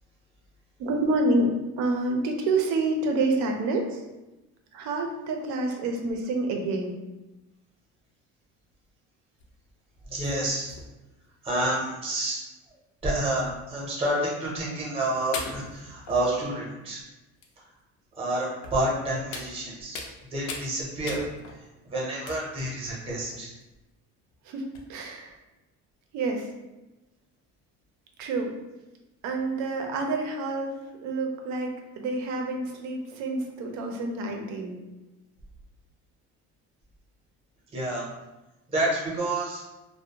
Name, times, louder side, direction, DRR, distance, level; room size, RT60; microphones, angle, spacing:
voice 1, 0.8-4.0 4.7-7.0 24.5-25.4 26.1-26.5 28.2-28.5 29.2-30.8 31.0-34.8, right 2 dB, 75° right, 3 dB, 0.5 m, -28 dB
sound 1, 9.4-9.6 10.2-11.2 12.0-12.1 12.3-12.4 13.5-13.6 14.5-14.7 15.3-16.7 17.4-17.5 18.6-18.9 19.3-20.2 20.5-20.7 21.1-21.7 22.3-22.8 23.3-23.6 24.3-24.4 24.7-24.8, left 4 dB, 85° left, 0.5 m, -40 dB
voice 2, 10.1-10.7 11.4-12.4 13.0-17.0 18.2-20.0 20.3-21.3 21.8-23.5 37.7-38.0 38.7-39.6, right 1 dB, 20° right, -5 dB, 0.7 m, -29 dB
2.5 x 2.1 x 2.8 m, 1.0 s
cardioid pair, 165°, 29 cm